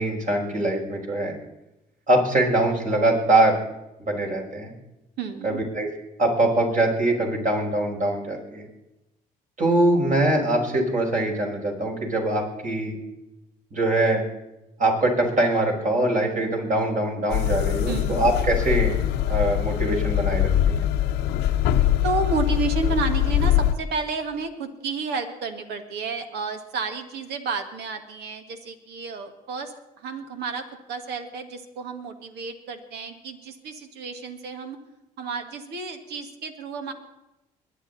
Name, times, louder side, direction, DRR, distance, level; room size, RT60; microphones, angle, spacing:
voice 1, 0.0-1.4 2.1-3.6 4.0-4.7 5.4-5.9 6.2-8.6 9.6-13.0 13.7-14.2 14.8-18.9 19.3-20.9, right 1 dB, 50° right, 0 dB, 5.2 m, -23 dB
voice 2, 5.2-5.6 17.9-18.3 22.0-34.8 35.2-36.9, right 4 dB, 80° right, 6 dB, 1.8 m, -31 dB
sound 1, 17.3-23.7, left 12 dB, 85° left, 0.9 m, -23 dB
22.5 x 10.0 x 4.1 m, 0.93 s
supercardioid pair, 60°, 17 cm